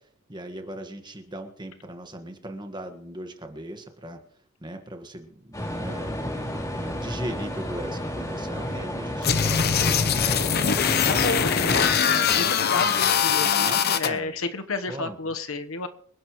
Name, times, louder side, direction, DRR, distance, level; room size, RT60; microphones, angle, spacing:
voice 1, 0.3-4.2 4.6-6.1 6.7-10.5 13.4-14.3 14.9-15.2, right 1 dB, 20° right, 6 dB, 1.5 m, -38 dB
sound 1, 5.5-12.0, left 1 dB, 15° left, 2.6 m, -32 dB
sound 2, 9.2-14.1, left 7 dB, 50° left, 0.8 m, -22 dB
voice 2, 11.1-15.9, left 3 dB, 75° left, 8 dB, 1.1 m, -31 dB
26.0 x 11.0 x 3.1 m, 0.63 s
head